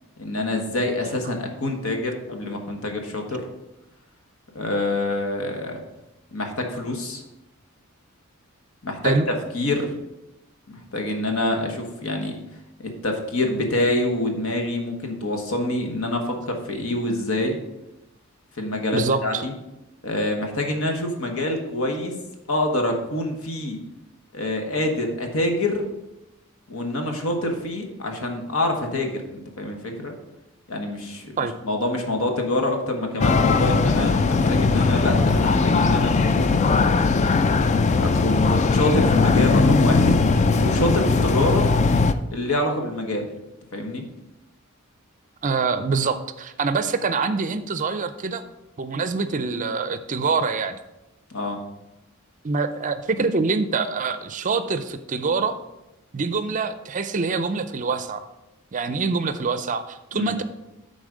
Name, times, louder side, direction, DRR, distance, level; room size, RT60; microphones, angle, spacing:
voice 1, 0.2-3.4 4.5-5.8 6.3-7.2 8.8-9.1 9.5-9.9 10.7-12.3 12.8-17.6 18.6-19.5 20.0-22.1 22.5-23.8 24.3-25.9 26.7-30.1 30.7-37.1 38.0-40.2 40.6-41.7 42.3-43.3 43.7-44.1 51.3-51.6 60.1-60.3, left 1 dB, 75° left, 3 dB, 1.3 m, -26 dB
voice 2, 18.9-19.4 31.4-31.5 33.5-33.6 45.4-48.4 48.8-50.8 52.4-55.6 56.1-58.2 58.7-60.4, right 4 dB, 35° right, 11 dB, 0.5 m, -25 dB
sound 1, 33.2-42.1, left 4 dB, 35° left, 0.3 m, -19 dB
10.0 x 4.0 x 5.0 m, 0.95 s
head